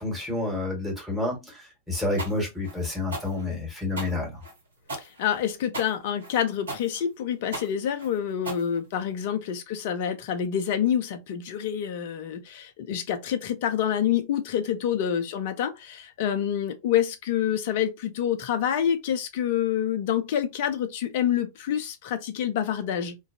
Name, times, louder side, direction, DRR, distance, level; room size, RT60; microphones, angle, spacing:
voice 1, 0.0-1.6 1.9-4.4, left 2 dB, ahead, 1.4 m, -29 dB
sound 1, 2.2-9.3, right 2 dB, 70° right, 0.9 m, -37 dB
voice 2, 5.0-23.2, left 9 dB, 50° left, 0.5 m, -27 dB
2.4 x 2.3 x 2.6 m
figure-of-eight pair, 90°, 0 cm